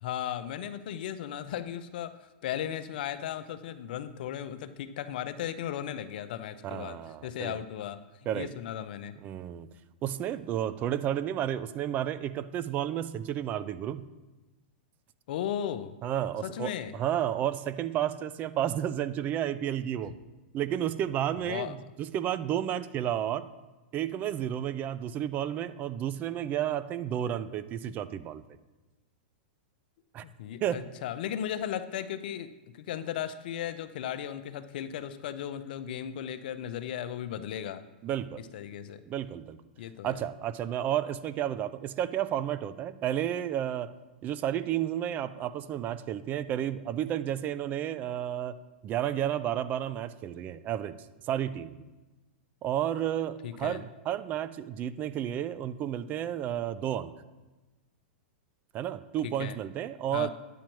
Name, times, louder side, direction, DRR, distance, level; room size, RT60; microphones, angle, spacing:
voice 1, 0.0-8.0 8.3-9.2 15.3-16.0 16.4-17.0 21.5-21.8 30.2-37.8 38.5-39.0 39.8-40.2 53.4-53.8 59.2-59.6 60.1-60.3, left 10 dB, 65° left, 12 dB, 0.6 m, -36 dB
voice 2, 6.6-7.6 8.3-8.5 9.2-9.7 10.0-14.1 16.0-20.1 20.5-23.5 23.9-28.4 30.1-30.2 30.6-30.8 38.0-38.4 39.1-39.6 40.0-43.9 44.2-48.6 48.8-51.0 51.3-51.7 52.6-57.1 58.7-60.3, right 11 dB, 35° right, 15 dB, 0.4 m, -31 dB
10.0 x 8.7 x 3.1 m, 1.1 s
hypercardioid pair, 120°, 5 cm